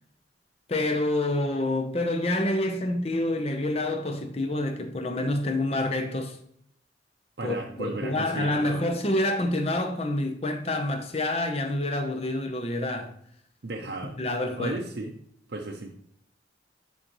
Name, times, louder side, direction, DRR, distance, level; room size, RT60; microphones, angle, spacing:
voice 1, 0.7-6.4 7.4-13.1 14.2-14.8, left 1 dB, 35° left, 0.7 m, -27 dB
voice 2, 7.4-8.9 13.6-14.2 14.6-15.1 15.5-15.9, right 2 dB, 65° right, 0.6 m, -35 dB
10.5 x 3.9 x 3.1 m
head